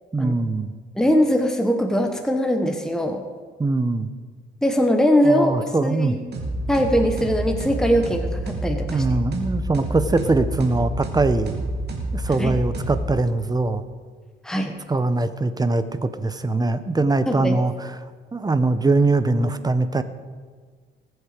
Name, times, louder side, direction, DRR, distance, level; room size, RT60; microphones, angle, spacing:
voice 1, 0.1-0.7 3.6-4.1 5.2-6.2 8.9-11.6 12.1-13.8 14.9-17.9 18.3-20.0, right 2 dB, 20° right, 12 dB, 0.9 m, -22 dB
voice 2, 1.0-3.2 4.6-5.5 5.8-6.2 6.7-9.0 12.4-12.5 14.4-14.7 17.3-17.6, equal, 5° left, 4 dB, 1.3 m, -21 dB
sound 1, 6.3-13.5, right 1 dB, 60° right, 2.8 m, -28 dB
20.0 x 8.1 x 5.2 m, 1.5 s
cardioid pair, 90°, 20 cm